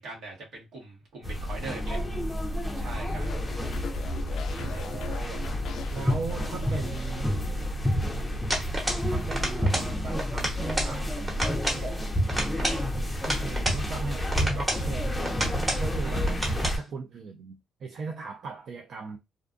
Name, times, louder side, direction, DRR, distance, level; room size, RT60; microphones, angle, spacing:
voice 1, 0.0-2.0 2.8-3.3 4.5-4.9 16.0-16.3, right 3 dB, 75° right, 1.2 m, -41 dB
sound 1, 1.2-16.8, equal, 15° left, 0.6 m, -29 dB
sound 2, 3.3-7.7 8.0-8.4, left 6 dB, 75° left, 0.3 m, -42 dB
voice 2, 4.7-5.4 5.9-7.4 9.1-12.1 12.5-12.9 13.4-19.2, right 4 dB, 60° right, 0.4 m, -38 dB
sound 3, 8.5-9.1 9.3-9.9 10.2-10.9 11.3-11.8 12.3-13.8 14.3-14.9 15.2-15.9 16.3-16.8, right 1 dB, 20° right, 1.1 m, -30 dB
2.5 x 2.2 x 2.5 m
cardioid pair, 90°, 0 cm